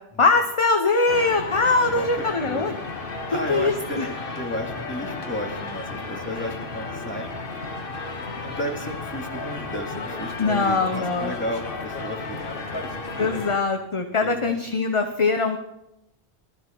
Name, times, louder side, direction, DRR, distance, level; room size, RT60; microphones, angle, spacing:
voice 1, 0.2-2.7 3.3-4.1 10.4-11.3 13.2-15.6, left 3 dB, 30° left, 6 dB, 0.8 m, -22 dB
sound 1, 1.1-13.6, left 3 dB, 55° left, 1.5 m, -33 dB
voice 2, 1.9-2.7 3.3-4.0 4.4-7.3 8.2-13.3 14.2-14.6, equal, 10° left, 0 dB, 2.4 m, -33 dB
20.0 x 13.0 x 4.5 m, 0.89 s
omnidirectional pair, 1.1 m